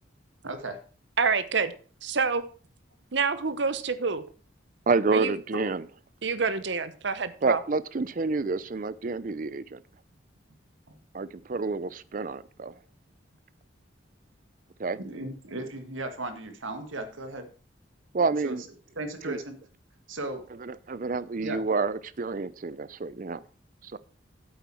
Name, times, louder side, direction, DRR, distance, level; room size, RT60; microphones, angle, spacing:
voice 1, 0.4-0.8 5.5-5.6 10.9-11.1 15.0-17.5 18.4-18.6 18.9-19.6 20.1-20.4 21.4-21.6, right 2 dB, 85° right, 8 dB, 1.6 m, -35 dB
voice 2, 1.2-1.7 2.0-2.4 3.1-4.2 5.1-5.3 6.2-7.6, right 5 dB, 65° right, 13 dB, 0.8 m, -27 dB
voice 3, 4.9-5.8 7.4-9.8 11.1-12.8 14.8-15.0 18.1-18.6 19.3-19.4 20.6-23.4 23.8-24.0, right 4 dB, 45° right, 17 dB, 0.5 m, -28 dB
8.3 x 8.1 x 4.4 m, 0.40 s
head